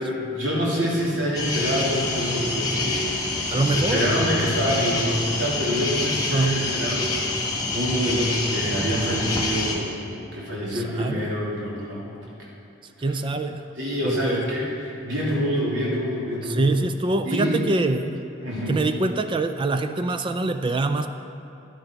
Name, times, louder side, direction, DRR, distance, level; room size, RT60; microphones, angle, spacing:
voice 1, 0.0-12.5 13.0-13.2 13.8-16.7 17.2-17.6 18.4-18.9, equal, 70° right, -5 dB, 2.8 m, -26 dB
sound 1, 1.3-9.8, left 2 dB, 20° left, 1.4 m, -26 dB
voice 2, 3.5-4.3 6.3-6.6 10.7-11.2 13.0-13.7 14.0-14.5 16.4-18.1 18.7-21.1, right 2 dB, 25° right, 9 dB, 0.3 m, -24 dB
11.0 x 10.5 x 4.5 m, 2.8 s
head